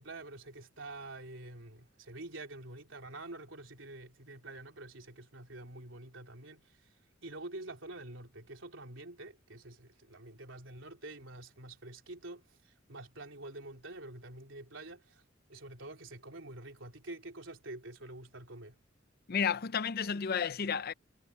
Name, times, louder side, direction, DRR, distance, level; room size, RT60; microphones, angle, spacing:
voice 1, 0.0-7.0 7.2-15.2 15.5-18.8, right 2 dB, 80° right, 3.7 m, -47 dB
voice 2, 19.3-20.9, left 6 dB, 55° left, 0.6 m, -32 dB
head